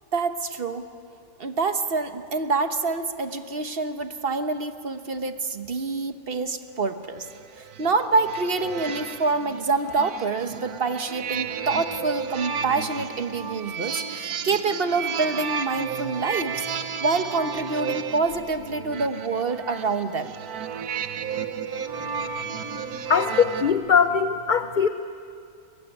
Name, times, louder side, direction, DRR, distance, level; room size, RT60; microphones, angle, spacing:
voice 1, 0.1-0.9 1.4-7.3 7.6-16.7 17.0-20.3, right 4 dB, 45° right, 8 dB, 1.2 m, -26 dB
sound 1, 7.2-23.7, right 7 dB, 90° right, 1.5 m, -33 dB
voice 2, 23.1-24.9, left 6 dB, 50° left, 9 dB, 0.6 m, -20 dB
23.0 x 21.5 x 9.9 m, 2.4 s
omnidirectional pair, 1.5 m